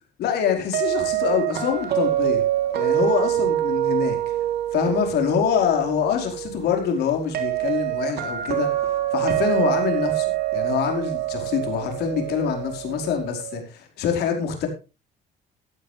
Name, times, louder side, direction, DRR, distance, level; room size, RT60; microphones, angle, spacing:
voice 1, 0.2-2.4 2.7-4.2 4.7-8.7 9.1-14.7, left 8 dB, 75° left, 3 dB, 4.9 m, -25 dB
sound 1, 0.7-13.6, right 13 dB, 70° right, 3.4 m, -25 dB
16.5 x 12.0 x 3.4 m, 0.30 s
cardioid pair, 110°, 17 cm